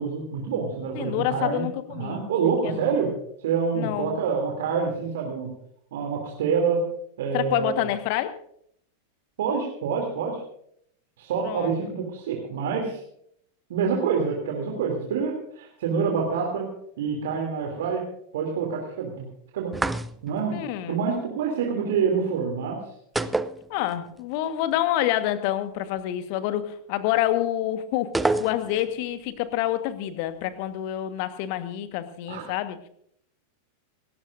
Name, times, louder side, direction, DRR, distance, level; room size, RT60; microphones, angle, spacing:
voice 1, 0.0-1.6 2.0-3.1 3.4-5.5 5.9-6.8 7.2-7.8 9.4-10.4 11.2-13.0 13.7-16.7 17.0-18.0 18.3-19.2 19.5-19.7 20.2-20.6 20.9-22.8 32.3-32.5, right 6 dB, 55° right, 0 dB, 2.9 m, -26 dB
voice 2, 0.9-2.3 2.6-2.8 3.7-4.2 7.3-8.3 11.4-11.9 20.5-21.0 23.7-28.1 28.4-32.9, left 13 dB, 45° left, 11 dB, 1.4 m, -27 dB
sound 1, 19.7-20.5 23.2-24.2 24.5-24.6 28.1-28.9, right 2 dB, 5° right, 0.6 m, -27 dB
27.5 x 13.5 x 2.6 m, 0.69 s
figure-of-eight pair, 90°, 0 cm